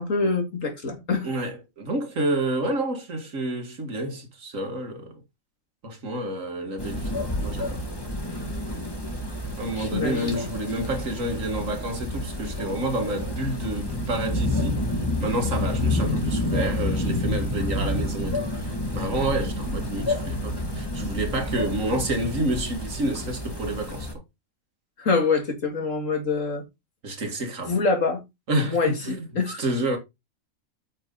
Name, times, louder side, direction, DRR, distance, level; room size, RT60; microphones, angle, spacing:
voice 1, 0.0-1.3 9.8-10.5 25.0-26.6 27.7-28.2 28.6-29.6, left 4 dB, 65° left, 2.5 m, -25 dB
voice 2, 1.2-5.2 5.8-7.1 7.4-7.8 9.6-14.8 15.2-24.1 27.0-27.8 28.5-29.3 29.6-30.0, right 1 dB, 65° right, 2.3 m, -29 dB
sound 1, 6.8-24.1, left 1 dB, 15° left, 2.1 m, -29 dB
9.0 x 5.9 x 3.9 m
omnidirectional pair, 1.4 m